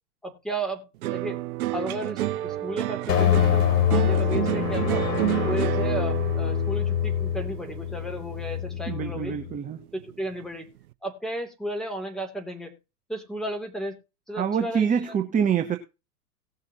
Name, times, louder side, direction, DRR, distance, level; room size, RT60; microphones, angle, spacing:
voice 1, 0.2-1.4 1.7-5.1 5.5-9.3 9.9-10.7 11.0-12.7 13.1-14.0 14.3-14.9, right 1 dB, ahead, 3 dB, 2.7 m, -33 dB
sound 1, 1.0-9.5 9.8-10.4, right 15 dB, 65° right, 0.7 m, -30 dB
sound 2, 3.1-9.6, left 10 dB, 75° left, 3.6 m, -25 dB
voice 2, 8.9-9.8 14.4-15.8, right 7 dB, 15° right, 7 dB, 0.9 m, -25 dB
18.0 x 6.7 x 2.8 m, 0.28 s
hypercardioid pair, 100°, 48 cm